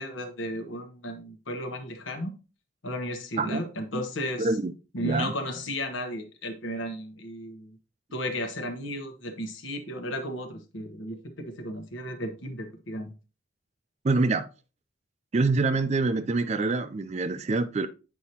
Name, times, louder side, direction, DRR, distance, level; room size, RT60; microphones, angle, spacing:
voice 1, 0.0-2.3 2.8-4.5 4.9-7.8 8.1-13.1, left 1 dB, 85° left, 1.1 m, -34 dB
voice 2, 4.4-4.7 5.0-5.3 14.0-14.5 15.3-17.9, right 3 dB, 35° right, 0.4 m, -25 dB
8.2 x 4.7 x 2.9 m
head